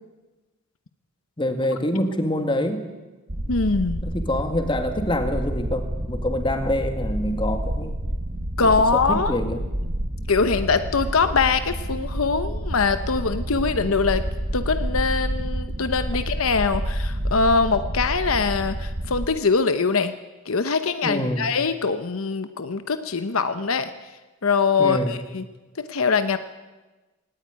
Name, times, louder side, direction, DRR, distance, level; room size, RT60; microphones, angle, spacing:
voice 1, 1.4-2.9 4.0-8.0 8.6-9.7 21.0-21.5 24.8-25.1, left 1 dB, 25° left, 6 dB, 2.1 m, -26 dB
sound 1, 3.3-19.3, right 1 dB, 45° right, 1.5 m, -29 dB
voice 2, 3.5-4.0 8.6-9.4 10.3-14.2 14.5-20.1 20.5-23.9 24.4-25.4 25.8-26.4, left 4 dB, 80° left, 10 dB, 1.0 m, -22 dB
18.0 x 17.5 x 9.7 m, 1.2 s
head